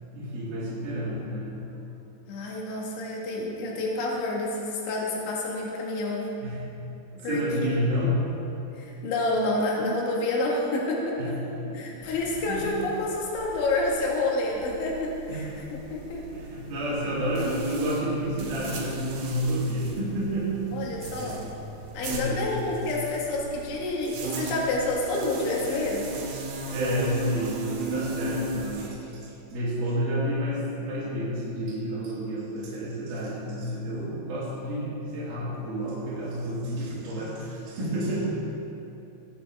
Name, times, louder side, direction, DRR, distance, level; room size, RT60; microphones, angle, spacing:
voice 1, 0.1-1.7 6.4-6.6 7.1-8.3 11.2-12.1 12.4-12.8 15.3-15.7 16.3-20.8 21.2-21.4 22.0-22.9 26.7-38.3, equal, 55° right, -10 dB, 3.9 m, -30 dB
voice 2, 2.3-6.3 7.2-7.4 8.8-11.4 11.7-15.5 15.9-16.2 20.7-21.4 21.9-26.1, left 2 dB, 70° left, -3 dB, 4.0 m, -28 dB
sound 1, 12.0-28.9, right 3 dB, 70° right, 4.2 m, -37 dB
21.5 x 8.2 x 3.6 m, 2.9 s
omnidirectional pair, 5.8 m